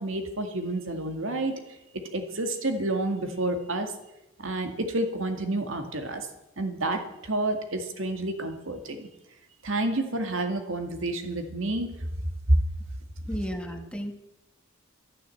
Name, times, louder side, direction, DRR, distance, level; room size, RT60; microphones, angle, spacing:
voice 1, 0.0-1.6 1.9-3.9 4.4-6.3 6.6-9.1 9.6-12.0 12.5-12.6 13.6-13.7, right 2 dB, 65° right, 6 dB, 2.1 m, -29 dB
voice 2, 13.3-14.1, equal, 5° left, 5 dB, 1.6 m, -33 dB
13.5 x 12.0 x 7.8 m, 0.94 s
head